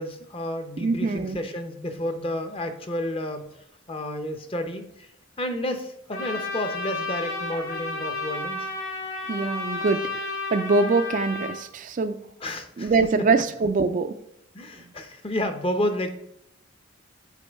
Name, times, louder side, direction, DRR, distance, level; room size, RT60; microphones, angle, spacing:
voice 1, 0.0-3.4 3.9-5.1 5.4-8.7 12.4-12.9 14.5-16.1, left 1 dB, 25° left, 7 dB, 0.7 m, -31 dB
voice 2, 0.8-1.4 9.3-12.2 12.8-14.2, right 4 dB, 40° right, 9 dB, 0.3 m, -24 dB
Trumpet, 6.1-11.6, left 3 dB, 85° left, 2.6 m, -32 dB
8.3 x 4.5 x 3.4 m, 0.80 s
head